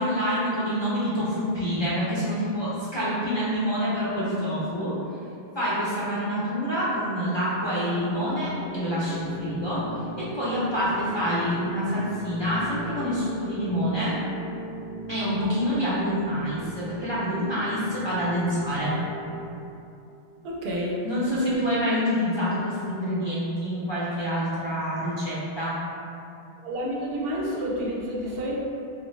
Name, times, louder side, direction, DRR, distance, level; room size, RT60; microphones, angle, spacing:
voice 1, 0.0-4.9 5.5-9.8 10.2-14.2 15.1-18.9 21.0-25.8, equal, 30° left, -10 dB, 0.7 m, -27 dB
sound 1, 8.1-19.5, left 1 dB, 65° left, 0.8 m, -39 dB
voice 2, 20.4-21.0 21.3-21.5 26.6-28.6, equal, 70° right, -4 dB, 0.8 m, -29 dB
4.0 x 2.1 x 3.1 m, 2.7 s
omnidirectional pair, 1.1 m